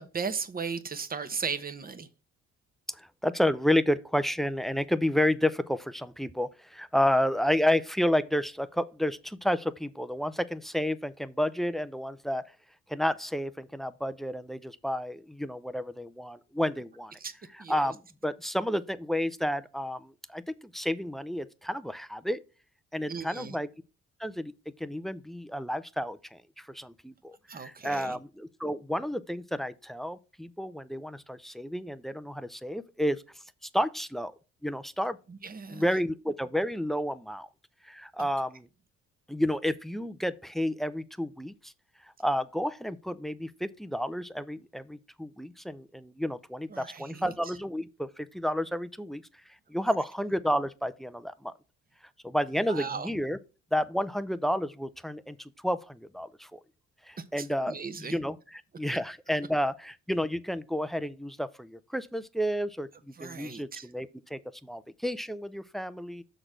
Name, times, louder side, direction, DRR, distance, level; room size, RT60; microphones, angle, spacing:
voice 1, 0.0-2.1 17.2-17.3 17.6-17.9 23.1-23.6 27.5-28.2 35.3-35.9 38.2-38.3 46.7-47.6 52.7-53.1 57.2-58.2 63.1-63.9, right 5 dB, 30° right, 1.0 m, -37 dB
voice 2, 2.9-12.4 12.9-17.1 17.7-22.4 22.9-23.7 24.2-24.5 24.8-33.2 33.6-34.3 34.6-35.2 35.7-37.5 37.8-38.6 39.3-41.7 42.2-49.2 49.7-51.5 52.2-53.4 53.7-56.6 57.1-58.4 58.8-66.2, equal, ahead, 0.5 m, -31 dB
6.6 x 4.0 x 6.1 m
cardioid pair, 90°, 30 cm